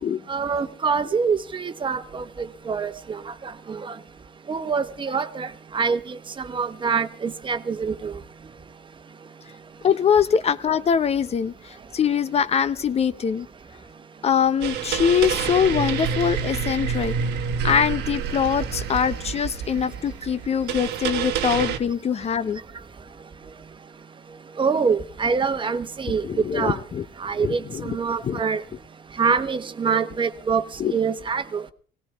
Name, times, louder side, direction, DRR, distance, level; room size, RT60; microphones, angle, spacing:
voice 1, 0.3-2.2 2.7-2.9 3.7-3.8 4.5-5.5 5.7-6.0 6.4-8.1 24.6-26.8 27.2-28.6 29.2-30.6 30.9-31.6, right 5 dB, 30° right, 1.1 m, -24 dB
voice 2, 9.8-13.5 14.2-17.1 17.6-22.6 26.2-27.0 27.4-27.9 28.2-28.5 30.8-30.9, left 7 dB, 40° left, 0.7 m, -23 dB
sound 1, 14.6-21.8, right 7 dB, 85° right, 1.3 m, -28 dB
18.5 x 17.5 x 3.4 m
cardioid pair, 110°, 17 cm